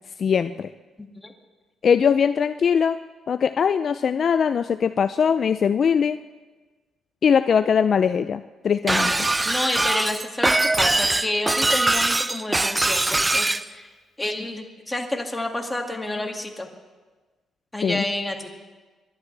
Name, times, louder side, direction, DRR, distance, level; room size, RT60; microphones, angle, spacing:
voice 1, 0.2-0.7 1.8-3.0 3.3-6.2 7.2-9.1 17.8-18.0, left 7 dB, 50° left, 11 dB, 0.4 m, -21 dB
voice 2, 1.0-1.3 8.8-13.9 14.2-16.7 17.7-18.5, left 1 dB, 15° left, 2 dB, 2.2 m, -29 dB
Shatter, 8.9-13.6, right 2 dB, 15° right, 0.5 m, -22 dB
30.0 x 11.5 x 3.4 m, 1.3 s
cardioid pair, 90°, 0 cm